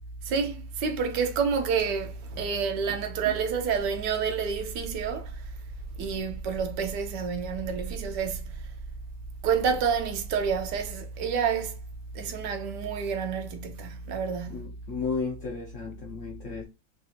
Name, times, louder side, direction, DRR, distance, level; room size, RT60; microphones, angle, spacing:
voice 1, 0.2-5.4 6.0-8.7 9.4-11.8 12.1-14.7, right 6 dB, 75° right, 1.1 m, -29 dB
voice 2, 14.5-16.6, left 5 dB, 65° left, 0.7 m, -33 dB
3.4 x 2.3 x 2.8 m
omnidirectional pair, 1.9 m